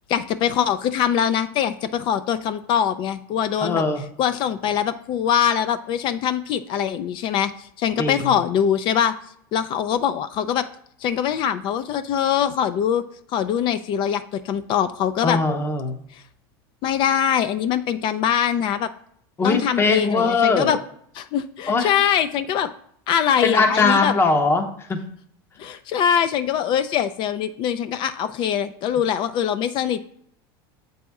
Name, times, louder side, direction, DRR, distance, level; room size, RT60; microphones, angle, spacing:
voice 1, 0.1-3.8 4.2-9.1 9.5-10.7 11.0-13.0 13.3-15.4 16.1-16.2 16.8-18.9 19.4-20.8 21.2-22.7 23.1-24.1 25.6-30.1, left 9 dB, 40° left, 12 dB, 0.4 m, -23 dB
voice 2, 3.6-4.1 8.0-8.3 15.2-16.0 19.4-20.8 21.7-21.9 23.4-25.0, left 3 dB, 20° left, 7 dB, 0.7 m, -21 dB
7.5 x 4.1 x 3.5 m, 0.67 s
supercardioid pair, 130°, 12 cm